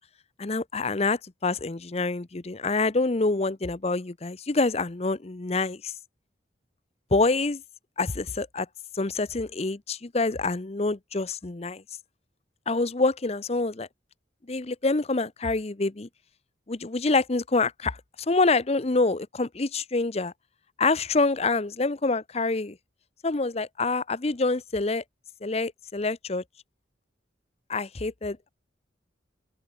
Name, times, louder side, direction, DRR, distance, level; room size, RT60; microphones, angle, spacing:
voice 1, 0.4-5.9 7.1-7.6 8.0-8.7 8.9-11.8 12.7-13.9 14.5-16.1 16.7-18.0 18.3-20.3 20.8-22.8 23.2-25.0 25.4-26.4 27.7-28.5, left 3 dB, 35° left, 0.7 m, -26 dB
open air
head